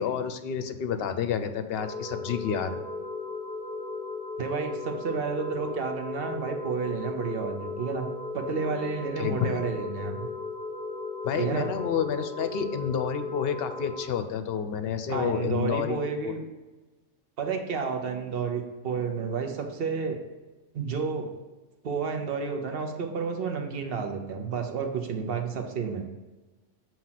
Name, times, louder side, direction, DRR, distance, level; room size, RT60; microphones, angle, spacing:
voice 1, 0.0-2.8 9.2-9.6 11.2-16.3, left 7 dB, 65° left, 9 dB, 0.7 m, -30 dB
sound 1, 1.8-14.0, left 3 dB, 10° right, 0.9 m, -36 dB
voice 2, 4.4-8.1 8.3-10.2 11.3-11.7 15.1-16.4 17.4-20.2 20.7-21.3 21.8-26.0, right 5 dB, 55° right, 4 dB, 1.0 m, -31 dB
7.3 x 2.9 x 5.7 m, 1.2 s
omnidirectional pair, 1.2 m